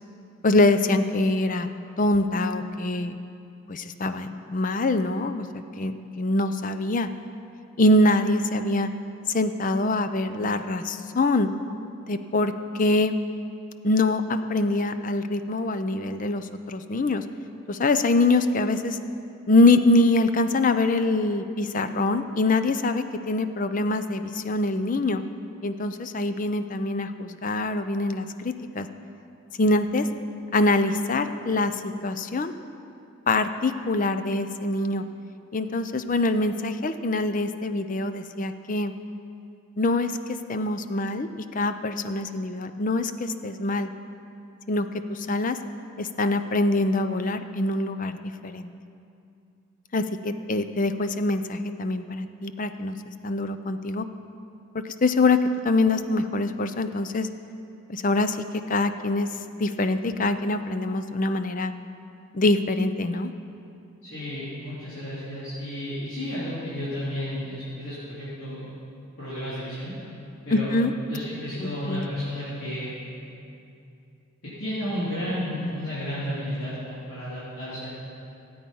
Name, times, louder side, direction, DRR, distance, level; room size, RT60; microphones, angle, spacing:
voice 1, 0.4-1.7 2.0-3.2 3.7-7.1 7.8-8.9 9.3-11.5 12.1-13.1 13.8-17.2 17.7-19.0 19.5-25.2 25.6-28.9 29.6-30.1 30.5-32.5 33.3-35.0 35.5-38.9 39.8-40.1 40.5-43.9 44.7-45.6 46.0-48.2 48.4-48.7 49.9-53.0 53.2-54.1 54.8-55.4 55.6-57.3 57.9-59.3 59.6-61.7 62.3-63.3 70.5-70.9 71.6-72.1, left 2 dB, 40° left, 10 dB, 0.5 m, -24 dB
voice 2, 64.0-68.7 69.2-69.9 70.5-70.7 71.1-73.0 74.4-77.9, equal, 70° left, -13 dB, 3.8 m, -32 dB
17.5 x 8.7 x 5.5 m, 2.6 s
head